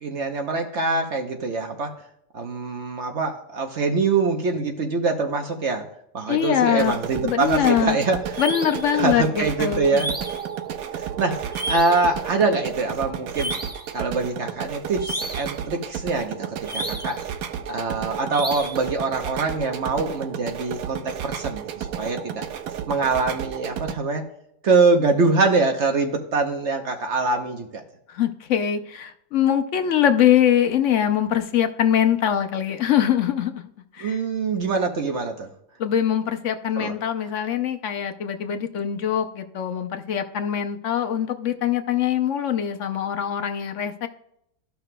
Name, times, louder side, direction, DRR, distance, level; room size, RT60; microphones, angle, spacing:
voice 1, 0.0-1.9 2.3-5.9 6.1-8.4 8.9-10.1 10.9-13.6 13.9-17.2 17.7-22.4 22.9-24.2 24.6-27.8 34.0-35.5 36.7-36.9, right 3 dB, 55° right, 4 dB, 1.0 m, -24 dB
voice 2, 6.3-7.0 7.2-8.0 8.4-10.0 28.1-33.7 34.0-34.2 35.8-44.1, left 9 dB, 65° left, 8 dB, 1.0 m, -23 dB
sound 1, 6.7-23.9, right 9 dB, 80° right, 1.1 m, -33 dB
sound 2, 8.3-8.9 9.9-10.5 11.5-12.1 13.3-13.9 15.0-15.6 16.7-17.2 18.3-18.9, right 1 dB, 10° right, 0.8 m, -32 dB
14.0 x 5.8 x 2.2 m, 0.74 s
omnidirectional pair, 1.5 m